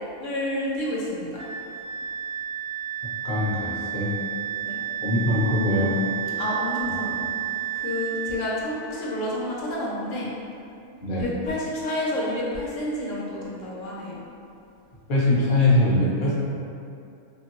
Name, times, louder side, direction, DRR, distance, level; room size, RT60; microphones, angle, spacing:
voice 1, 0.2-1.4 4.6-4.8 6.4-7.2 7.7-10.4 11.2-14.2, left 1 dB, 75° left, -5 dB, 1.0 m, -29 dB
Wind instrument woodwind instrument, 1.4-8.4, right 10 dB, 70° right, 0.9 m, -31 dB
voice 2, 3.2-4.1 5.0-5.9 11.0-11.3 15.1-16.3, left 1 dB, 50° left, -7 dB, 0.7 m, -22 dB
2.7 x 2.5 x 2.9 m, 2.6 s
omnidirectional pair, 1.3 m